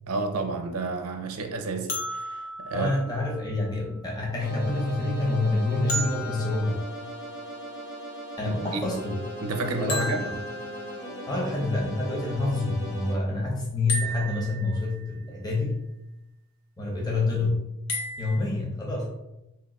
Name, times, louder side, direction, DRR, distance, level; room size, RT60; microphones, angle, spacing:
voice 1, 0.1-2.9 8.4-9.0 9.4-10.2, right 3 dB, 85° right, 0.6 m, -31 dB
sound 1, 1.9-3.9 5.9-7.7 9.9-11.3 13.9-15.2 17.9-18.4, equal, 75° left, 0.8 m, -35 dB
voice 2, 2.7-6.8 8.4-9.2 9.8-10.4 11.3-15.9 16.8-17.8 18.2-19.1, left 2 dB, 20° left, 0.7 m, -27 dB
sound 2, 4.4-13.1, right 1 dB, 50° left, 1.1 m, -38 dB
3.0 x 2.9 x 4.1 m
head